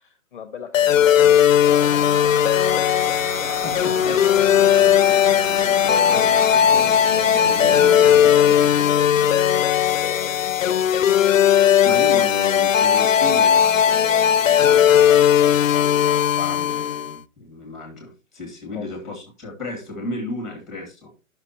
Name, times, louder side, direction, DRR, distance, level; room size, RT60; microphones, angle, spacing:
voice 1, 0.0-5.3 5.6-11.3 18.7-19.2, left 7 dB, 40° left, 0.8 m, -37 dB
sound 1, 0.7-17.2, left 9 dB, 70° left, 0.6 m, -17 dB
sound 2, 1.6-10.7, right 2 dB, 35° right, 1.2 m, -36 dB
sound 3, 3.0-9.6, right 1 dB, 70° right, 3.6 m, -37 dB
voice 2, 3.4-4.2 6.1-6.2 11.8-21.1, left 2 dB, ahead, 1.9 m, -34 dB
10.5 x 6.0 x 2.8 m
hypercardioid pair, 160°, 41 cm